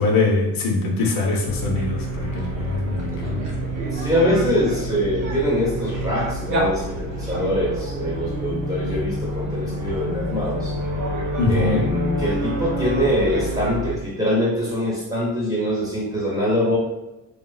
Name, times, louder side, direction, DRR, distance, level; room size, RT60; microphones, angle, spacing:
voice 1, 0.0-3.6 11.4-11.9, left 3 dB, 70° left, 0 dB, 0.7 m, -23 dB
sound 1, 1.5-13.9, right 1 dB, 60° right, 0.9 m, -28 dB
voice 2, 3.8-10.7 11.5-16.8, equal, 10° right, -6 dB, 0.9 m, -23 dB
3.1 x 2.1 x 2.3 m, 1.0 s
cardioid pair, 140°, 35 cm